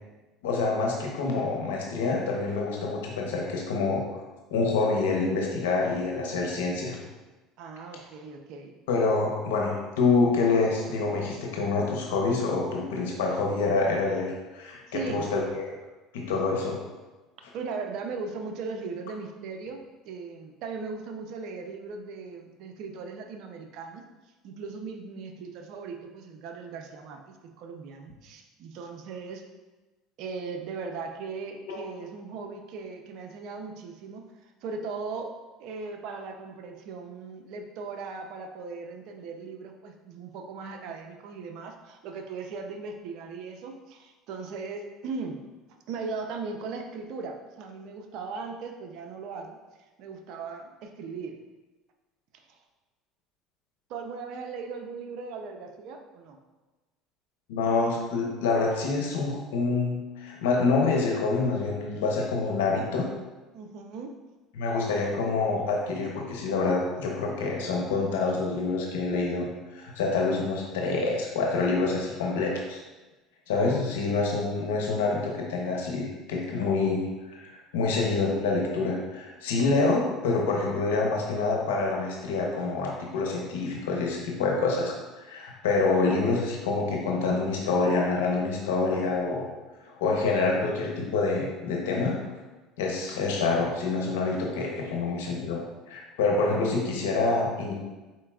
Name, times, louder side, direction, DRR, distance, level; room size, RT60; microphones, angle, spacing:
voice 1, 0.4-4.2 4.5-7.0 8.9-15.7 16.1-16.8 31.7-31.8 57.5-63.1 64.5-69.5 69.7-72.8 73.5-89.5 89.8-92.2 92.8-95.6 95.9-97.7, left 3 dB, 90° left, 0 dB, 0.9 m, -27 dB
voice 2, 7.6-8.8 14.9-15.3 17.5-24.0 24.4-29.4 30.2-34.2 34.6-35.3 35.6-45.4 45.9-49.6 50.0-51.4 53.9-56.4 63.5-64.1, right 4 dB, 65° right, 4 dB, 0.6 m, -38 dB
4.5 x 4.1 x 2.4 m, 1.2 s
supercardioid pair, 85°, 0 cm